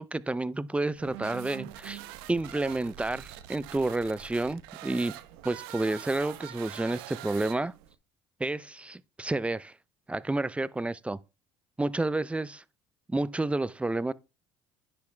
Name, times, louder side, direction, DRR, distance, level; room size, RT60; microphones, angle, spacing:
voice 1, 0.0-2.0 2.3-5.2 5.4-7.7 8.4-9.7 10.1-11.2 11.8-12.6 13.1-14.1, right 2 dB, 10° right, 0.5 m, -30 dB
sound 1, 0.9-7.9, right 13 dB, 85° right, 0.9 m, -44 dB
10.0 x 5.9 x 3.3 m
supercardioid pair, 85°, 12 cm